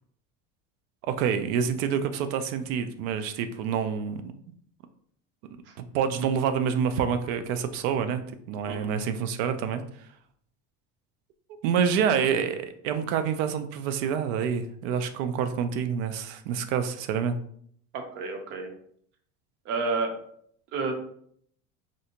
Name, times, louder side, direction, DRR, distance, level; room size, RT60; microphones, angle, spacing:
voice 1, 1.0-4.2 5.8-8.2 8.5-9.8 11.6-17.4, right 7 dB, 85° right, 9 dB, 0.5 m, -27 dB
voice 2, 17.9-18.7 19.7-20.1 20.7-20.9, right 3 dB, 35° right, 4 dB, 0.5 m, -30 dB
3.2 x 2.6 x 2.8 m, 0.64 s
cardioid pair, 165°, 37 cm